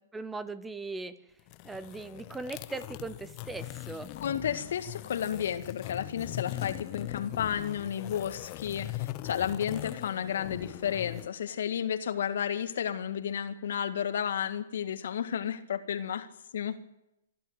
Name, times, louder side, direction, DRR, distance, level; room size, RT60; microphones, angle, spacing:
voice 1, 0.1-1.2 1.6-4.1, right 3 dB, 10° right, 15 dB, 0.9 m, -39 dB
sound 1, 1.4-11.3, left 18 dB, 40° left, 0.8 m, -40 dB
voice 2, 4.2-16.3 16.5-16.8, left 9 dB, 70° left, 10 dB, 1.8 m, -32 dB
26.0 x 11.5 x 9.3 m, 0.86 s
hypercardioid pair, 130°, 0 cm